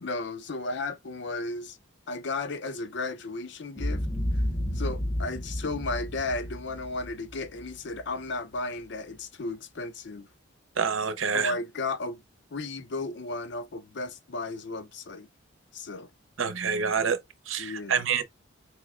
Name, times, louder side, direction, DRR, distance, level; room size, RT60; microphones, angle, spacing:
voice 1, 0.0-1.8 2.1-4.1 4.3-4.4 4.7-10.3 11.3-12.2 12.5-15.3 15.7-16.1 17.6-18.0, left 3 dB, 60° left, 0.6 m, -34 dB
Boom, 3.8-8.0, equal, 25° left, 0.7 m, -31 dB
voice 2, 10.8-11.5 16.4-17.2 17.5-18.2, right 6 dB, 80° right, 0.8 m, -27 dB
4.4 x 3.1 x 2.4 m
head